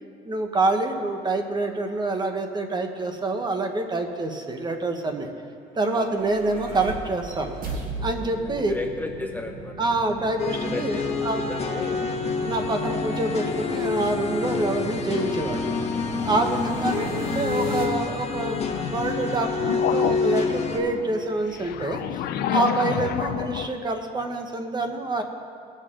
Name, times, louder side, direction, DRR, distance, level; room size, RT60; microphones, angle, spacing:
voice 1, 0.2-5.3 5.7-7.6 8.0-8.7 9.8-11.4 12.4-15.7 16.2-22.0 22.5-25.2, right 2 dB, 25° right, 5 dB, 1.1 m, -26 dB
voice 2, 5.9-6.4 8.2-8.3 8.6-9.8 10.4-12.8, left 3 dB, 10° left, 3 dB, 0.7 m, -35 dB
sound 1, 5.9-17.8, right 2 dB, 55° right, 2.3 m, -37 dB
sound 2, 10.4-20.8, left 5 dB, 40° left, 1.3 m, -27 dB
sound 3, 16.8-20.2 20.9-23.7, left 10 dB, 70° left, 0.5 m, -31 dB
19.5 x 6.6 x 3.8 m, 2.6 s
cardioid pair, 110°, 17 cm